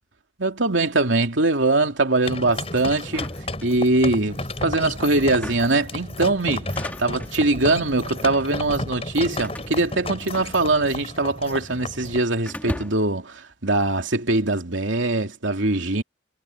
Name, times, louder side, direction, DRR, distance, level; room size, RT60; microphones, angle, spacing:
voice 1, 0.4-3.3 3.6-6.7 7.0-16.0, right 2 dB, 90° right, 2.9 m, -22 dB
sound 1, 2.3-12.2, left 2 dB, 30° left, 7.6 m, -32 dB
sound 2, 3.0-4.2 5.2-5.9 6.5-7.4 8.2-8.6 9.4-10.9 11.2-12.0 12.5-13.2, equal, 10° left, 2.7 m, -37 dB
head